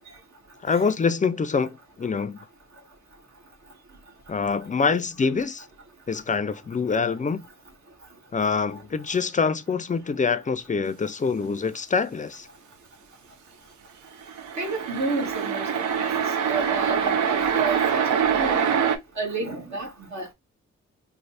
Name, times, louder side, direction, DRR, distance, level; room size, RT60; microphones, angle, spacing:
voice 1, 0.6-2.4 4.3-5.7 6.1-7.4 8.3-12.5, left 5 dB, 25° left, 0.4 m, -25 dB
sound 1, 14.2-19.0, right 7 dB, 85° right, 0.6 m, -24 dB
voice 2, 14.5-16.1 16.5-18.7 19.2-20.3, right 3 dB, 70° right, 1.4 m, -31 dB
3.2 x 2.0 x 4.1 m
cardioid pair, 75°, 29 cm